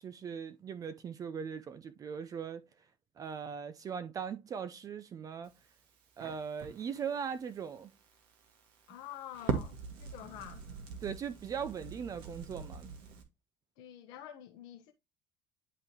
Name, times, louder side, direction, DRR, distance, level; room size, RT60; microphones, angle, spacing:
voice 1, 0.0-2.6 3.2-5.5 6.2-7.9 11.0-12.9, right 7 dB, 40° right, 0.7 m, -39 dB
Crackle, 5.4-13.2, right 6 dB, 65° right, 1.8 m, -43 dB
voice 2, 8.9-10.7 13.8-14.9, left 11 dB, 65° left, 0.9 m, -48 dB
11.0 x 3.6 x 3.0 m
hypercardioid pair, 70°, 9 cm